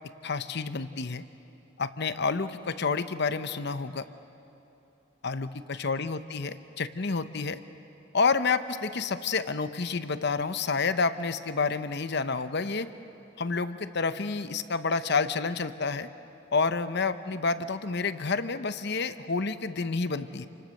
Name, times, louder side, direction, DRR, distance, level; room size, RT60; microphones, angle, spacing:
voice 1, 0.2-1.2 1.8-4.0 5.2-7.6 8.1-12.9 13.4-16.1 16.5-20.5, left 4 dB, 55° left, 11 dB, 0.8 m, -29 dB
29.0 x 24.5 x 6.5 m, 2.9 s
head